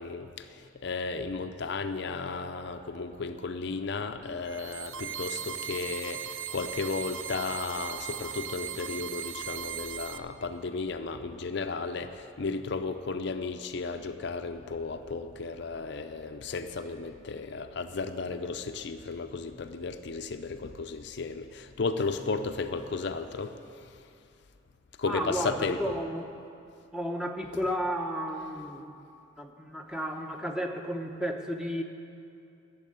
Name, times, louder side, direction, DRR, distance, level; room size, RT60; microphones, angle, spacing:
voice 1, 0.0-24.0 25.0-26.0, left 4 dB, 55° left, 8 dB, 0.5 m, -34 dB
sound 1, 4.4-10.2, right 9 dB, 80° right, 0.6 m, -38 dB
voice 2, 25.1-26.3 26.9-28.9 29.4-31.8, equal, 5° right, 3 dB, 0.7 m, -33 dB
12.0 x 7.5 x 8.8 m, 2.6 s
head